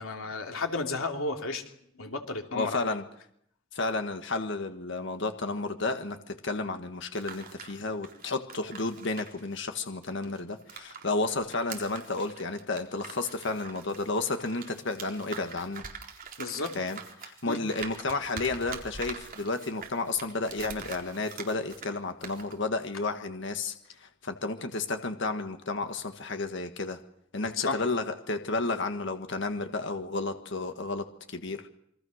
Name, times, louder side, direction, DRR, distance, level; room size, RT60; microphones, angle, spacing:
voice 1, 0.0-1.6 2.0-2.9 16.4-16.8 17.4-17.6 27.6-27.8, left 3 dB, 85° left, 4 dB, 3.1 m, -32 dB
voice 2, 2.5-3.0 3.7-15.8 16.8-27.0 27.3-31.7, left 3 dB, 60° left, 7 dB, 1.6 m, -32 dB
sound 1, 7.0-11.0 11.3-22.0 22.2-22.5, right 6 dB, 45° right, 4.0 m, -44 dB
27.5 x 23.5 x 6.5 m, 0.72 s
head